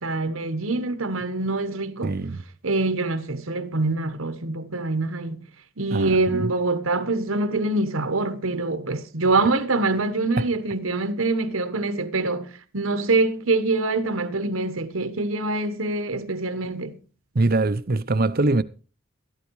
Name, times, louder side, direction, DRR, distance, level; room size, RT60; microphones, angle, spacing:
voice 1, 0.0-2.2 2.6-5.4 5.8-17.0, right 3 dB, 80° right, 1.3 m, -25 dB
voice 2, 2.0-2.4 5.9-6.5 10.4-10.5 17.3-18.6, right 2 dB, 45° right, 0.7 m, -23 dB
13.0 x 12.0 x 4.7 m
head